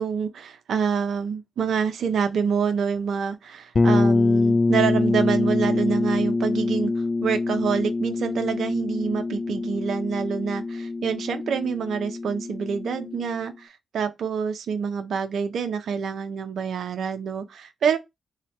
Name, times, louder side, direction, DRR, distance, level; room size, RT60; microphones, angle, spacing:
voice 1, 0.0-6.9 7.2-18.0, right 6 dB, 75° right, 0.4 m, -27 dB
sound 1, 3.7-13.4, left 3 dB, 45° left, 0.3 m, -24 dB
3.1 x 2.1 x 4.0 m
supercardioid pair, 50°, 0 cm